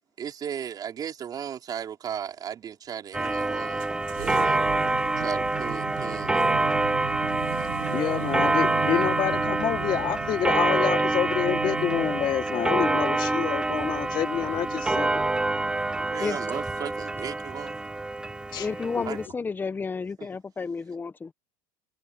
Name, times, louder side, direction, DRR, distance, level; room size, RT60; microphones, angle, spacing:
voice 1, 0.2-4.7 5.2-6.6 15.9-17.9 19.0-19.2 20.2-20.3, right 8 dB, 35° right, 4.6 m, -36 dB
Clock, 3.1-19.3, right 2 dB, 5° right, 0.5 m, -26 dB
sound 1, 3.8-16.0, right 20 dB, 75° right, 1.7 m, -39 dB
voice 2, 7.9-15.2 18.5-18.7 19.0-19.1, left 10 dB, 45° left, 3.1 m, -28 dB
voice 3, 18.6-21.3, left 4 dB, 15° left, 1.1 m, -31 dB
supercardioid pair, 100°, 11 cm